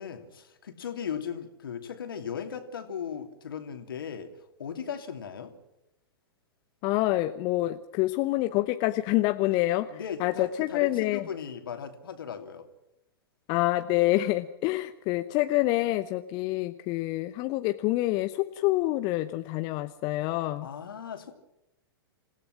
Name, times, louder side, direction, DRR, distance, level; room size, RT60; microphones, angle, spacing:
voice 1, 0.0-4.3 4.6-5.5 9.9-12.7 20.6-21.3, left 7 dB, 60° left, 7 dB, 2.8 m, -37 dB
voice 2, 6.8-11.2 13.5-20.7, left 17 dB, 35° left, 10 dB, 0.8 m, -27 dB
27.0 x 16.5 x 6.1 m, 0.86 s
figure-of-eight pair, 105°, 13 cm